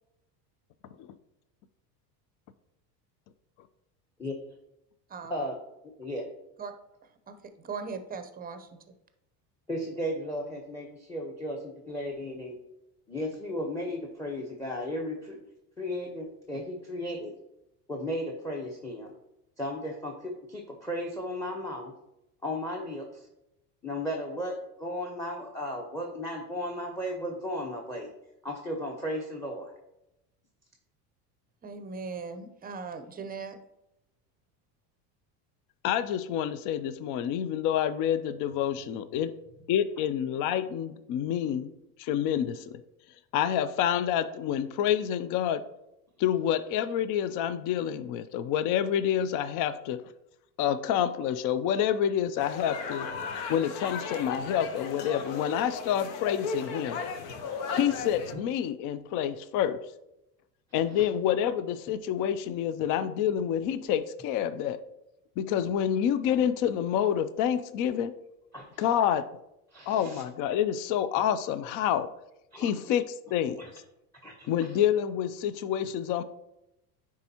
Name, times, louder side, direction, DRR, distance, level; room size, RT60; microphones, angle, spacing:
voice 1, 5.1-5.5 6.6-6.7 7.3-8.9 31.6-33.6, right 5 dB, 20° right, 9 dB, 0.6 m, -39 dB
voice 2, 9.7-12.5 13.1-15.4 15.8-17.4 17.9-19.1 19.6-21.9 22.4-23.3 23.8-28.1 28.4-29.7 61.0-61.1 68.5-68.9 69.7-70.2 71.2-71.3 72.5-72.7 73.6-73.7 74.2-74.7, left 1 dB, 5° left, 2 dB, 0.8 m, -35 dB
voice 3, 35.8-39.3 39.7-41.7 42.0-42.8 43.3-45.6 46.2-50.0 50.6-53.1 53.5-57.0 57.7-59.8 60.7-64.8 65.4-68.1 68.8-69.3 69.9-72.1 72.6-73.6 74.5-76.2, left 9 dB, 45° left, 13 dB, 0.4 m, -28 dB
sound 1, 52.4-58.3, left 5 dB, 65° left, 1.0 m, -36 dB
9.5 x 3.6 x 2.8 m, 0.87 s
supercardioid pair, 90°, 48 cm